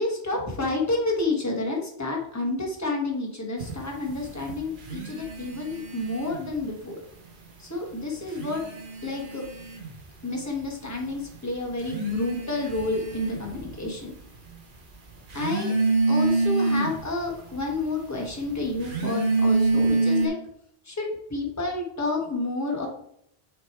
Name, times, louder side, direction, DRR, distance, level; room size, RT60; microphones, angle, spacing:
voice 1, 0.0-7.0 7.6-8.6 9.0-9.4 10.2-14.1 15.3-15.7 16.1-20.4 20.8-22.9, left 2 dB, 15° left, 0 dB, 1.2 m, -29 dB
sound 1, 3.6-6.7 6.9-7.7 8.2-20.3, right 3 dB, 55° right, 1.0 m, -28 dB
6.2 x 3.5 x 4.3 m, 0.69 s
omnidirectional pair, 1.1 m